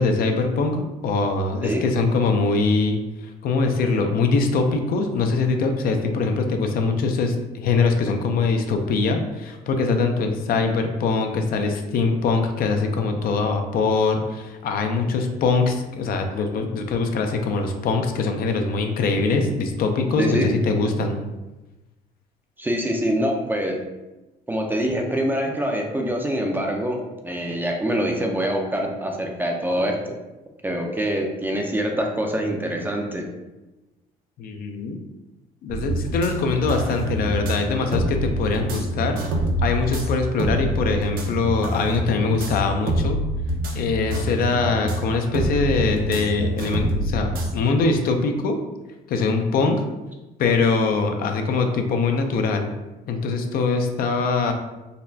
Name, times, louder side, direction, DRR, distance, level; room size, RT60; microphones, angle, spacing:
voice 1, 0.0-21.2 34.4-35.0 35.6-39.2 39.6-43.2 43.7-48.6 49.1-49.8 50.4-52.7 53.1-54.5, left 4 dB, 60° left, 5 dB, 0.5 m, -22 dB
voice 2, 20.2-20.5 22.6-23.8 24.5-30.2 30.6-33.2, equal, 10° right, 1 dB, 0.4 m, -25 dB
sound 1, 35.7-47.6, right 1 dB, 60° right, 0.6 m, -26 dB
3.9 x 2.2 x 2.6 m, 1.0 s
cardioid pair, 110°, 17 cm